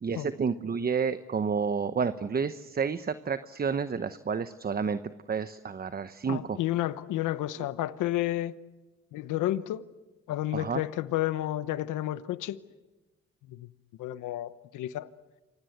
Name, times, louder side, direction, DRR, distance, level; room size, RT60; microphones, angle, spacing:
voice 1, 0.0-5.0 5.3-6.6 10.5-10.8, right 6 dB, 30° right, 1.0 m, -30 dB
voice 2, 6.3-8.6 9.1-9.9 10.3-12.6 13.5-13.7 14.0-15.1, left 14 dB, 90° left, 1.1 m, -31 dB
28.5 x 24.5 x 8.1 m
cardioid pair, 90°, 30 cm